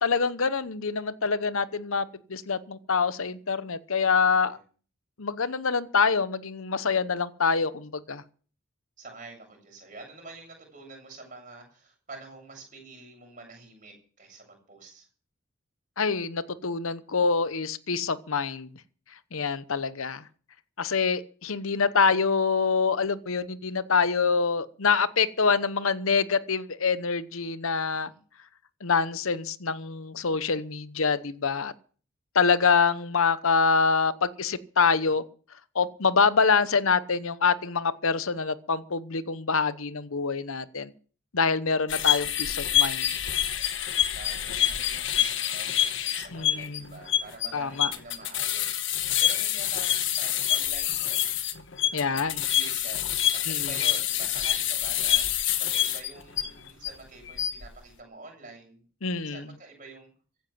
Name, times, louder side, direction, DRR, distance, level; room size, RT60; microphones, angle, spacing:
voice 1, 0.0-4.6 5.2-8.2 16.0-18.7 19.3-20.2 20.8-28.1 28.8-31.7 32.3-35.2 35.7-40.9 41.3-43.1 46.3-46.9 47.5-47.9 51.9-52.4 53.5-53.7 59.0-59.4, left 5 dB, 75° left, 15 dB, 0.9 m, -25 dB
voice 2, 3.9-4.6 9.0-15.1 27.9-28.2 44.1-51.4 52.0-53.1 53.3-58.8 59.2-60.1, right 3 dB, 35° right, 1 dB, 7.8 m, -47 dB
sound 1, 41.9-56.9 57.3-57.7, left 11 dB, 60° left, 1.3 m, -26 dB
15.5 x 10.5 x 7.3 m, 0.42 s
head